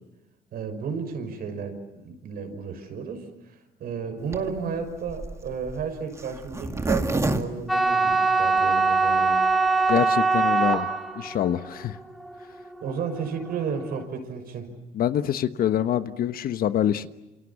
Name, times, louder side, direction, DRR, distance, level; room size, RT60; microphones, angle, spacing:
voice 1, 0.5-3.2 3.8-9.4 12.8-14.7, right 5 dB, 65° right, 7 dB, 6.0 m, -32 dB
Zipper (clothing), 4.3-8.6 9.1-9.2 9.3-9.4 9.7-10.0, right 2 dB, 15° right, 2.1 m, -29 dB
sound 1, 7.7-13.8, right 4 dB, ahead, 1.6 m, -23 dB
voice 2, 9.9-10.9 11.1-12.0 14.9-17.1, left 10 dB, 60° left, 11 dB, 1.3 m, -25 dB
28.0 x 27.5 x 7.2 m, 0.98 s
cardioid pair, 110°, 17 cm